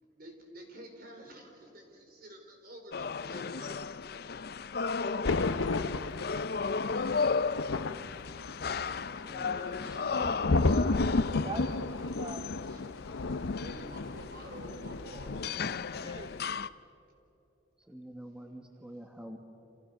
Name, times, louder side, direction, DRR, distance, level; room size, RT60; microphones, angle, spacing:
voice 1, 0.0-4.1 4.6-4.7 9.4-11.8 12.6-12.9 13.6-15.3, equal, 50° right, 3 dB, 4.7 m, -49 dB
sound 1, 2.9-16.7, left 5 dB, 55° left, 0.5 m, -35 dB
voice 2, 5.0-6.3 11.4-11.6 12.2-12.5 16.0-16.5, right 3 dB, 25° right, 9 dB, 0.6 m, -45 dB
Thunder, 5.2-15.8 16.1-16.4, left 3 dB, 90° left, 0.7 m, -33 dB
voice 3, 9.1-10.4 17.8-19.4, equal, 5° right, 4 dB, 1.3 m, -47 dB
29.0 x 28.0 x 6.7 m, 2.9 s
head